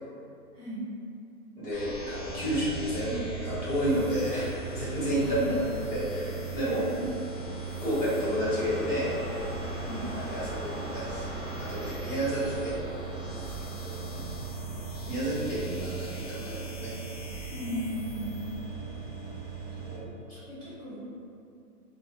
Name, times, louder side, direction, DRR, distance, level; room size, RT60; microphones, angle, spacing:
voice 1, 0.5-0.8 5.2-5.6 6.6-6.9 9.8-10.1 17.5-18.3 20.5-21.0, left 1 dB, 30° left, -17 dB, 0.9 m, -36 dB
voice 2, 1.6-4.5 4.7-5.6 5.9-6.8 7.6-9.1 10.3-11.3 11.6-12.8 13.1-14.2 15.1-16.9 19.8-20.4, equal, 75° left, -9 dB, 1.5 m, -31 dB
sound 1, 1.7-19.6, equal, 55° left, 0.7 m, -42 dB
sound 2, 2.3-20.0, right 7 dB, 30° right, 0.4 m, -40 dB
sound 3, 8.3-15.3, left 1 dB, 5° right, 0.8 m, -42 dB
2.6 x 2.1 x 3.1 m, 2.5 s
hypercardioid pair, 170°, 46 cm